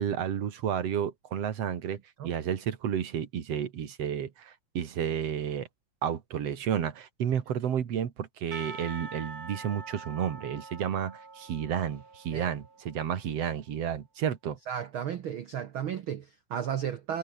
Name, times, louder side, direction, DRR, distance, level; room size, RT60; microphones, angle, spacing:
voice 1, 0.0-5.7 6.0-14.6, right 9 dB, 50° right, 2.6 m, -31 dB
Percussion / Church bell, 8.5-13.3, right 4 dB, 25° right, 3.3 m, -45 dB
voice 2, 14.7-17.2, right 9 dB, 75° right, 1.2 m, -34 dB
omnidirectional pair, 3.9 m